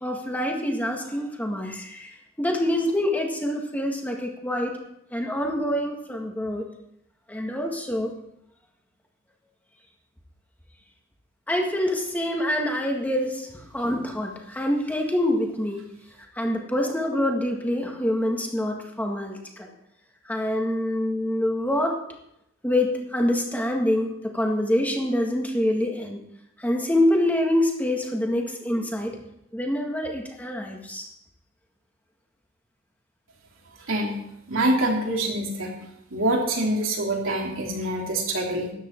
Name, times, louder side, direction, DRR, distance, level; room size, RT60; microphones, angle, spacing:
voice 1, 0.0-2.1 2.4-4.7 5.1-6.7 7.3-8.1 11.5-13.4 13.7-15.8 16.4-19.7 20.3-21.9 22.6-26.2 26.6-29.2 29.5-31.1, left 1 dB, 10° left, 1 dB, 1.8 m, -25 dB
voice 2, 34.5-35.7 36.1-38.7, right 1 dB, 70° right, -1 dB, 3.1 m, -25 dB
13.5 x 10.0 x 4.5 m, 0.79 s
head